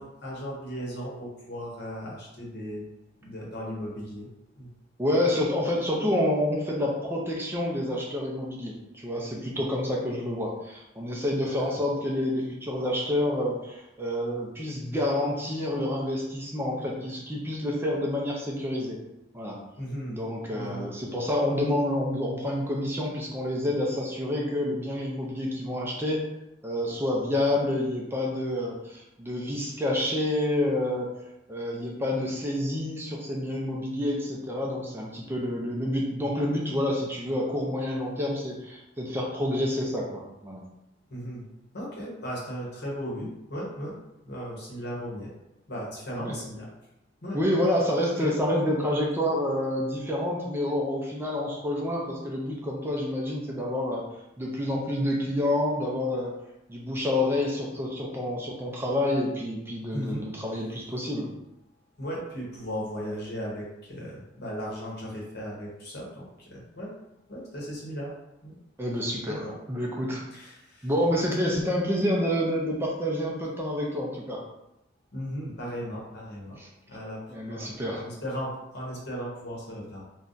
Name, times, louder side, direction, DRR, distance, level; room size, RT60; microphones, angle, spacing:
voice 1, 0.0-2.9 3.2-4.3 4.6-4.7 11.4-11.8 19.8-20.2 20.5-20.9 41.1-41.4 41.7-44.0 44.2-45.3 45.7-46.7 47.2-47.4 47.9-48.3 59.9-60.2 62.0-66.9 67.3-68.1 68.4-68.6 69.3-69.6 70.3-70.9 75.1-76.6 76.9-80.0, equal, 60° left, -4 dB, 1.0 m, -36 dB
voice 2, 5.0-19.0 19.3-19.6 20.1-26.2 26.6-31.2 31.5-40.6 46.2-46.4 47.3-54.0 54.4-56.3 56.7-61.3 68.8-70.2 70.8-74.4 76.6-76.7 77.3-78.0, left 1 dB, 10° right, -2 dB, 0.4 m, -28 dB
2.5 x 2.2 x 3.7 m, 0.88 s
head